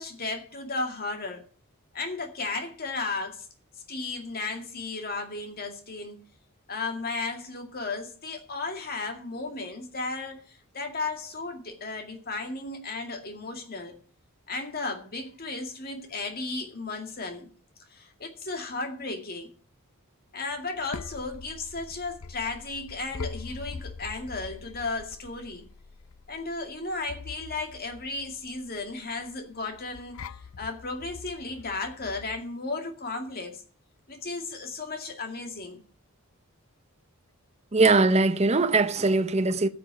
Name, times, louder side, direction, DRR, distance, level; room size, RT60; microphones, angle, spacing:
voice 1, 0.0-1.4 1.9-3.5 3.9-6.2 6.7-14.0 14.5-17.5 17.9-19.5 20.3-25.6 26.3-33.6 34.1-35.8, left 3 dB, 40° left, 2.2 m, -34 dB
sound 1, 20.5-32.4, left 4 dB, 70° left, 0.6 m, -43 dB
voice 2, 37.7-39.7, right 3 dB, 30° right, 0.7 m, -21 dB
12.5 x 6.9 x 8.2 m
head